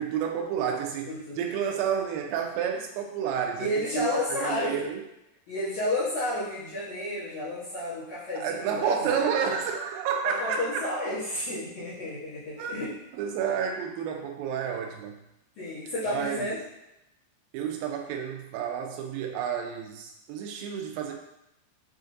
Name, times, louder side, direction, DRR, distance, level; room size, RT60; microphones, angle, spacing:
voice 1, 0.0-5.0 8.4-10.8 12.6-12.8 13.1-15.2 16.1-16.5 17.5-21.2, right 7 dB, 85° right, 3 dB, 2.1 m, -30 dB
voice 2, 1.1-1.4 3.6-4.9 5.5-9.3 10.2-12.9 15.6-16.6, left 1 dB, 70° left, -11 dB, 1.8 m, -31 dB
6.6 x 2.6 x 2.5 m, 0.86 s
omnidirectional pair, 4.8 m